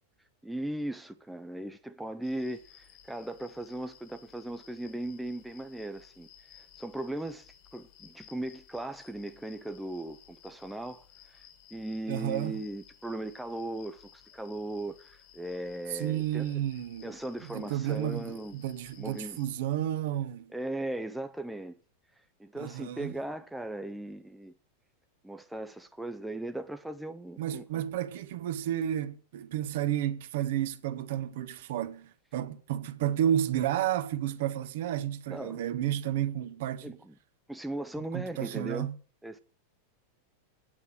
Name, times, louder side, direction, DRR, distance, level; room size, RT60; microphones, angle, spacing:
voice 1, 0.4-11.5 11.7-16.6 17.0-18.6 19.0-19.4 20.5-21.8 22.4-24.5 25.2-27.8 35.3-35.6 36.8-37.1 37.5-38.9 39.2-39.4, right 1 dB, 5° right, 0.6 m, -38 dB
sound 1, 2.2-19.6, left 10 dB, 40° left, 1.8 m, -57 dB
voice 2, 12.1-12.5 15.9-17.1 17.5-20.5 22.5-23.1 27.4-37.0 38.1-38.9, right 11 dB, 55° right, 0.9 m, -31 dB
9.0 x 8.1 x 7.5 m
figure-of-eight pair, 90°, 0 cm